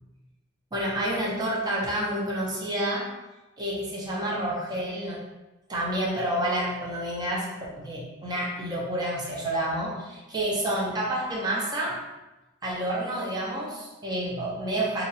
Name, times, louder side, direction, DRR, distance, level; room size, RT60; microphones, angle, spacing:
voice 1, 0.7-3.1 3.6-5.2 5.7-7.5 7.7-12.0 12.6-15.0, right 1 dB, 20° right, -4 dB, 0.6 m, -29 dB
2.9 x 2.3 x 2.7 m, 1.1 s
head